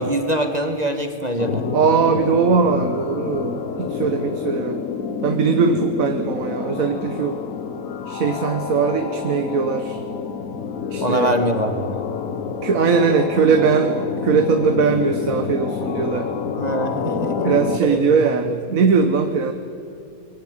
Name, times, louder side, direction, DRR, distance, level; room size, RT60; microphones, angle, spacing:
voice 1, 0.0-1.7 11.0-12.0 16.6-17.4 17.8-18.6, right 1 dB, 25° right, 6 dB, 1.5 m, -23 dB
sound 1, 1.4-17.8, left 6 dB, 60° left, 1.4 m, -28 dB
voice 2, 1.7-4.8 5.2-7.4 8.1-10.0 10.9-11.3 12.6-16.3 17.4-19.5, right 5 dB, 60° right, 7 dB, 1.6 m, -20 dB
23.0 x 17.5 x 9.0 m, 2.6 s
omnidirectional pair, 1.6 m